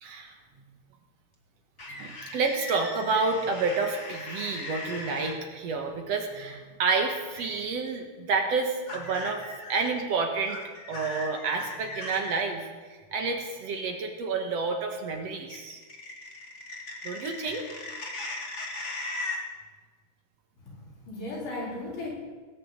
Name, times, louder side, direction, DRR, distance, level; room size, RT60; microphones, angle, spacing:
voice 1, 0.0-0.4 1.9-10.6 10.9-12.7 13.1-15.8 17.0-17.7, right 4 dB, 60° right, 4 dB, 2.2 m, -29 dB
sound 1, 1.8-5.3 7.3-7.6 8.9-9.9 10.5-12.4 15.5-19.4, left 2 dB, 25° left, 1.9 m, -38 dB
voice 2, 20.6-22.1, left 2 dB, 85° left, -4 dB, 5.9 m, -36 dB
19.0 x 6.7 x 8.8 m, 1.4 s
omnidirectional pair, 3.6 m